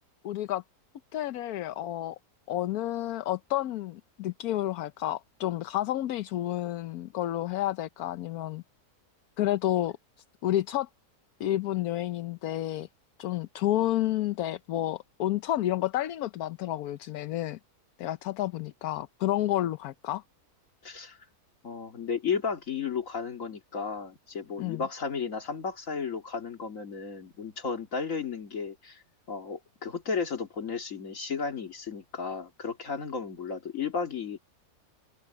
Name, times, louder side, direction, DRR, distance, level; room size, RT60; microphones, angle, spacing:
voice 1, 0.2-0.6 1.1-2.2 2.5-8.6 9.4-10.0 10.4-10.9 11.4-12.9 13.2-17.6 18.0-20.2 24.6-24.8, left 13 dB, 75° left, 1.2 m, -30 dB
voice 2, 20.8-21.2 21.6-29.0 29.3-34.4, left 5 dB, 55° left, 2.6 m, -34 dB
open air
omnidirectional pair, 1.6 m